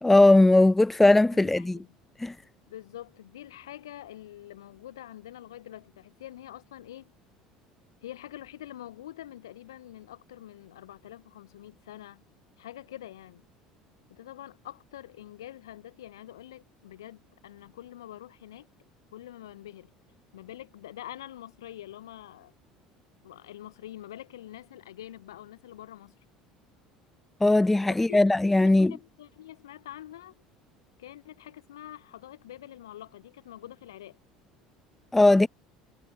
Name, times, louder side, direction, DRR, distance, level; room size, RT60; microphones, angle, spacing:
voice 1, 0.0-1.8 2.2-2.3 27.4-28.9 35.1-35.5, left 2 dB, 10° left, 0.3 m, -19 dB
voice 2, 1.3-1.9 2.7-7.1 8.0-12.2 12.6-13.4 14.1-18.7 19.1-19.9 20.3-22.5 23.2-26.2 27.8-28.2 28.6-30.3 31.0-34.2, left 13 dB, 70° left, 1.6 m, -45 dB
figure-of-eight pair, 65°, 2 cm